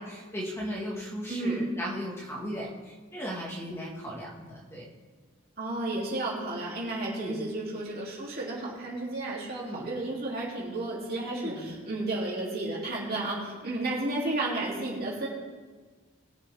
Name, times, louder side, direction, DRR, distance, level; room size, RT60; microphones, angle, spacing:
voice 1, 0.0-4.9 7.2-7.4 9.6-9.9 11.3-11.7, equal, 10° left, -5 dB, 1.9 m, -37 dB
voice 2, 1.3-1.6 5.6-15.3, right 2 dB, 45° right, -5 dB, 3.2 m, -32 dB
21.0 x 7.1 x 3.7 m, 1.4 s
head